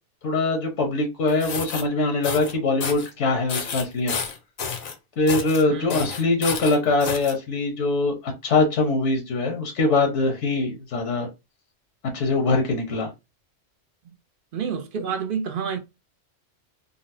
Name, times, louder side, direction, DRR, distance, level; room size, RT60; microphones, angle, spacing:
voice 1, 0.2-4.1 5.2-8.1 8.4-11.3 12.1-13.1, left 2 dB, 80° left, 1.1 m, -22 dB
sound 1, 1.3-1.8 2.2-2.5 2.8-3.1 3.5-4.9 5.3-5.6 5.9-7.3, left 6 dB, 55° left, 0.7 m, -30 dB
voice 2, 5.7-6.1 14.5-15.8, right 6 dB, 60° right, 0.6 m, -29 dB
3.9 x 2.0 x 2.6 m
omnidirectional pair, 1.2 m